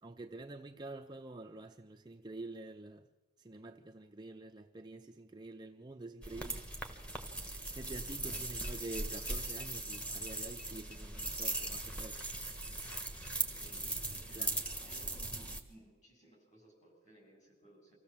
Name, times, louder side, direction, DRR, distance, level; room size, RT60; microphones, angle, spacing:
voice 1, 0.0-3.1 3.4-6.7 7.7-12.2 13.8-14.6, right 2 dB, 20° right, 0.6 m, -48 dB
sound 1, 6.2-15.6, right 2 dB, 5° left, 1.4 m, -39 dB
voice 2, 14.1-15.2 15.7-17.9, right 1 dB, 35° left, 7.4 m, -61 dB
24.5 x 15.5 x 7.4 m
head